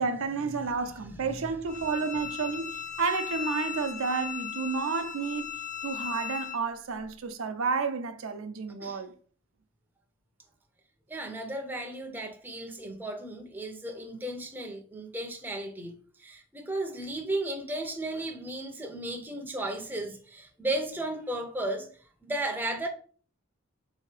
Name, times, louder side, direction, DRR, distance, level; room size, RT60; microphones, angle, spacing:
voice 1, 0.0-5.5 5.8-9.1, right 4 dB, 70° right, 0.5 m, -31 dB
Bowed string instrument, 1.7-6.6, left 9 dB, 35° left, 0.6 m, -37 dB
voice 2, 11.1-21.9 22.2-22.9, right 1 dB, 10° right, 0.5 m, -34 dB
3.6 x 2.8 x 4.7 m
head